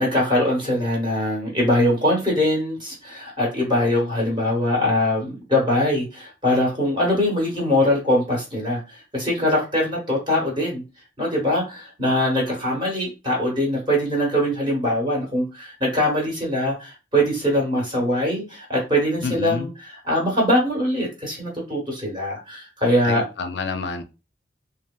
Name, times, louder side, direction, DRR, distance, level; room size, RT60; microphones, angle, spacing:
voice 1, 0.0-10.8 11.2-23.2, left 1 dB, 25° right, -2 dB, 1.0 m, -22 dB
voice 2, 19.2-19.7 23.1-24.0, left 4 dB, 65° left, 9 dB, 0.4 m, -28 dB
3.0 x 2.8 x 2.3 m, 0.29 s
head